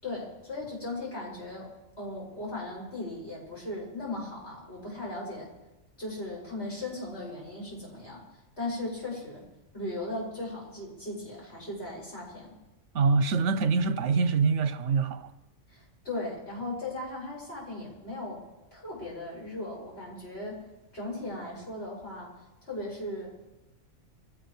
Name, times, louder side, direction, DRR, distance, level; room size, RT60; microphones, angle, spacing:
voice 1, 0.0-1.7 2.0-5.5 6.0-8.2 8.6-9.4 9.7-12.5 15.7-18.4 18.7-20.6 20.9-22.3 22.6-23.3, left 2 dB, 55° left, 7.0 m, -37 dB
voice 2, 12.9-15.3, right 4 dB, 70° right, 1.0 m, -25 dB
24.0 x 17.0 x 3.3 m
omnidirectional pair, 1.3 m